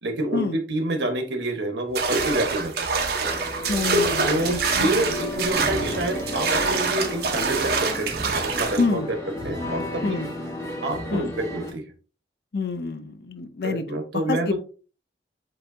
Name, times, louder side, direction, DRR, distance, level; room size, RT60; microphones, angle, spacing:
voice 1, 0.0-2.9 4.2-9.2 9.4-10.3 10.8-11.8 13.6-14.6, right 1 dB, 80° right, 4 dB, 1.2 m, -28 dB
sound 1, 2.0-8.9, right 4 dB, 60° right, 0.8 m, -25 dB
sound 2, 3.2-11.7, left 1 dB, 15° left, 1.1 m, -33 dB
voice 2, 3.7-5.0 8.8-9.1 10.0-10.3 11.1-11.3 12.5-14.6, left 4 dB, 60° left, 9 dB, 0.5 m, -27 dB
7.6 x 2.7 x 2.6 m, 0.36 s
head